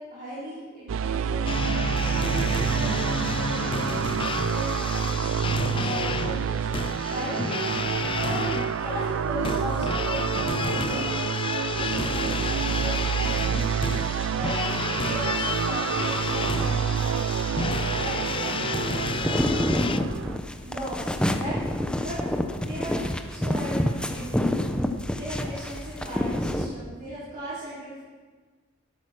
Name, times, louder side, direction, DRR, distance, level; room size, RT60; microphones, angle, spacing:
voice 1, 0.0-7.4 8.2-8.5 8.8-10.3 10.5-11.2 11.7-12.2 12.6-13.7 14.3-14.6 15.0-17.4 18.0-20.1 20.6-21.6 22.0-22.2 22.6-23.0 23.3-24.6 25.1-28.0, equal, 45° right, -11 dB, 4.4 m, -38 dB
sound 1, 0.9-20.4, right 7 dB, 70° right, 0.4 m, -28 dB
sound 2, 1.4-20.0, left 4 dB, 25° left, 0.4 m, -31 dB
sound 3, 19.0-26.7, left 1 dB, 5° left, 0.8 m, -27 dB
13.0 x 11.0 x 6.1 m, 1.4 s
head